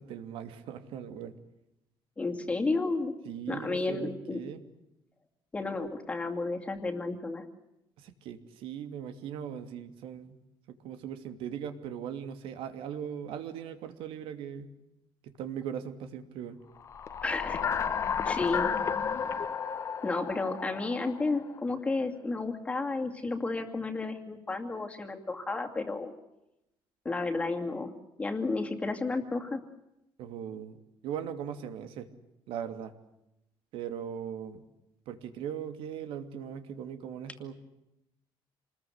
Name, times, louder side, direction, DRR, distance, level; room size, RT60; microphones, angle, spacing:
voice 1, 0.0-1.4 3.2-4.6 8.0-10.4 10.8-14.7 15.2-16.6 30.2-30.8 31.0-32.1 32.5-32.9 33.7-34.6 35.1-37.6, right 8 dB, 80° right, 9 dB, 2.8 m, -39 dB
voice 2, 2.2-3.1 3.5-4.4 5.5-7.5 17.2-17.6 18.2-18.7 20.0-26.1 27.0-27.9 28.2-29.6, left 3 dB, 15° left, 4 dB, 2.5 m, -32 dB
sound 1, 16.9-21.5, left 7 dB, 35° left, 1.3 m, -32 dB
28.0 x 21.0 x 8.1 m, 0.88 s
cardioid pair, 170°, 9 cm